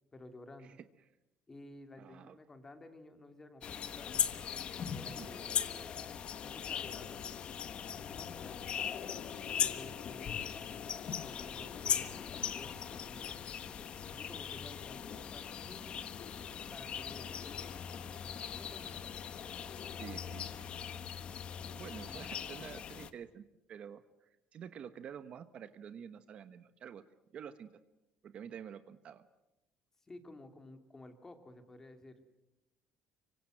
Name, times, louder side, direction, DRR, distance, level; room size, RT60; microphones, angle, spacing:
voice 1, 0.1-0.7 1.5-4.3 4.9-6.0 6.4-7.5 7.9-8.6 9.6-10.8 11.2-16.0 16.7-17.8 18.5-18.9 22.0-22.3 30.1-32.2, left 2 dB, 15° left, 7 dB, 2.8 m, -53 dB
voice 2, 2.0-2.4 5.2-5.3 20.0-20.7 21.7-24.0 24.5-27.0 27.3-27.7 28.2-29.3, right 8 dB, 40° right, 11 dB, 1.1 m, -48 dB
sound 1, 3.6-23.1, left 8 dB, 40° left, 1.3 m, -39 dB
26.0 x 24.5 x 7.8 m, 0.92 s
cardioid pair, 155°, 3 cm